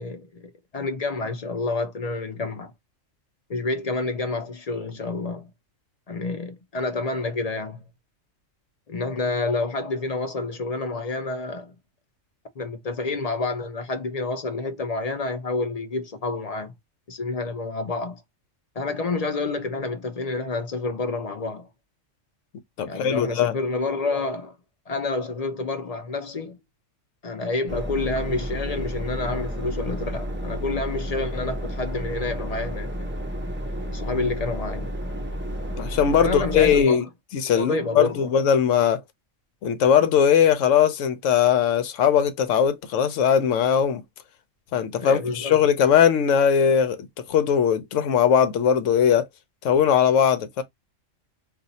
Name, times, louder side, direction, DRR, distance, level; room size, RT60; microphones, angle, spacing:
voice 1, 0.0-2.7 3.5-5.5 6.1-7.9 8.9-11.7 12.6-16.7 17.1-18.2 18.8-21.7 22.9-24.6 24.9-26.6 27.2-32.9 33.8-34.9 36.2-37.1 37.5-38.3 45.0-45.6, left 3 dB, 50° left, 0.4 m, -29 dB
voice 2, 22.8-23.6 35.8-37.0 37.3-39.0 39.6-44.0 44.7-49.3 49.6-50.6, left 8 dB, 75° left, 1.0 m, -20 dB
sound 1, 27.7-36.8, equal, 15° right, 0.4 m, -31 dB
2.5 x 2.4 x 3.9 m
omnidirectional pair, 1.4 m